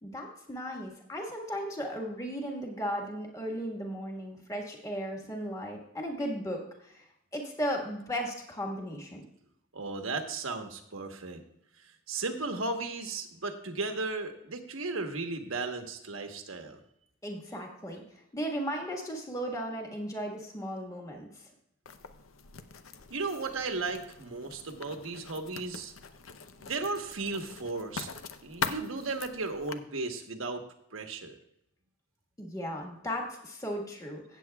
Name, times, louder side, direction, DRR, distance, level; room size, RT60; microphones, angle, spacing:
voice 1, 0.0-7.0 7.3-9.2 17.2-18.0 18.3-21.5 32.4-34.4, equal, 15° left, 0 dB, 1.6 m, -36 dB
voice 2, 9.7-11.4 12.1-16.8 23.1-25.9 26.6-28.1 28.4-30.6 30.9-31.4, right 3 dB, 85° right, 5 dB, 1.2 m, -35 dB
Writing, 21.9-29.7, left 5 dB, 85° left, 0.7 m, -42 dB
16.5 x 7.8 x 2.3 m, 0.78 s
head